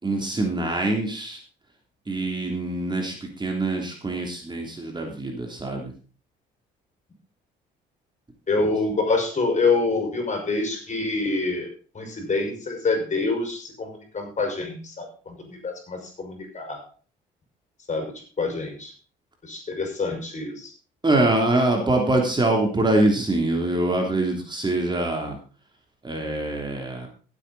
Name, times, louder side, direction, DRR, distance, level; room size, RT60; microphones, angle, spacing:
voice 1, 0.0-1.4 2.1-5.9 21.0-25.4 26.0-27.1, right 2 dB, 20° right, 1 dB, 3.2 m, -24 dB
voice 2, 8.5-11.7 11.9-16.8 17.9-18.1 18.4-18.9 19.4-20.7, left 3 dB, 35° left, 3 dB, 5.8 m, -26 dB
16.0 x 8.4 x 4.1 m, 0.38 s
supercardioid pair, 70°, 20 cm